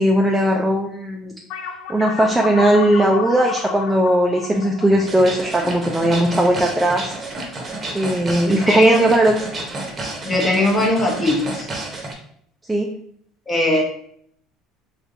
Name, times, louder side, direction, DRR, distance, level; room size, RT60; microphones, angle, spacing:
voice 1, 0.0-1.3 1.9-7.2 7.9-9.4 12.7-12.9, right 1 dB, 10° right, 1 dB, 0.4 m, -18 dB
sound 1, 1.5-6.3, left 6 dB, 65° left, 0.4 m, -31 dB
sound 2, 5.0-12.1, right 2 dB, 30° right, 0.8 m, -30 dB
voice 2, 8.7-9.0 10.2-11.7 13.5-13.8, left 1 dB, 25° left, 0 dB, 0.9 m, -19 dB
3.4 x 2.8 x 2.6 m, 0.64 s
supercardioid pair, 100°, 0 cm